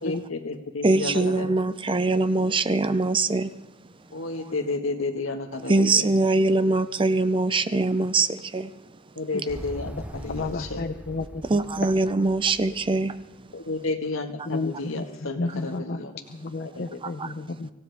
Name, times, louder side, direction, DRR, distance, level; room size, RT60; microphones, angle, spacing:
voice 1, 0.0-1.5 4.1-6.1 9.1-10.8 13.5-16.1 16.7-17.0, left 3 dB, 75° left, 4 dB, 1.7 m, -31 dB
voice 2, 0.8-3.5 5.7-8.7 11.5-13.1 17.2-17.3, right 3 dB, 25° right, 13 dB, 0.5 m, -22 dB
Motorcycle, 9.5-13.4, equal, 5° right, 0.9 m, -41 dB
voice 3, 10.3-11.8 12.7-12.8 14.5-16.0 16.3-17.7, left 3 dB, 50° left, 5 dB, 0.7 m, -32 dB
25.0 x 16.0 x 3.5 m, 0.92 s
head